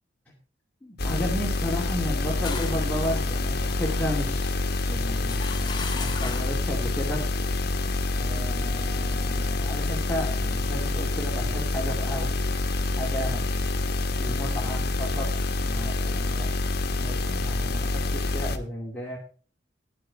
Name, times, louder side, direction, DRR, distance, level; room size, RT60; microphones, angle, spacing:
voice 1, 0.8-4.6 4.9-7.2 8.2-12.4 12.9-13.5 14.2-15.3 15.6-16.5 17.0-19.2, equal, 10° left, -5 dB, 2.4 m, -33 dB
sound 1, 1.0-18.6, left 2 dB, 60° left, 1.1 m, -27 dB
sound 2, 2.0-6.7, left 5 dB, 25° left, 1.7 m, -39 dB
10.5 x 9.7 x 4.7 m, 0.39 s
head